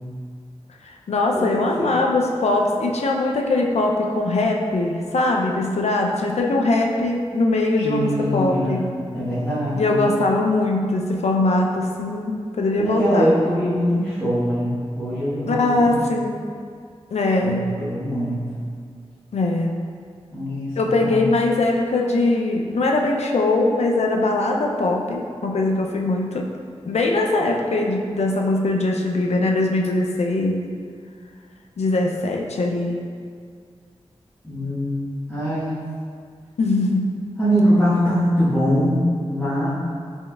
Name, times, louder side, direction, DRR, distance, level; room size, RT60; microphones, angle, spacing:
voice 1, 1.1-8.9 9.7-13.3 15.5-16.4 17.1-17.7 19.3-19.7 20.8-26.4 26.8-30.6 31.8-33.0 36.6-37.2, left 2 dB, 75° left, 0 dB, 0.4 m, -21 dB
voice 2, 7.8-8.9 9.1-10.1 12.8-14.7 14.9-16.1 17.4-18.5 20.3-21.3 34.4-35.8 37.4-39.7, equal, 10° left, -15 dB, 1.2 m, -22 dB
4.4 x 3.1 x 2.3 m, 2.1 s
cardioid pair, 55°, 11 cm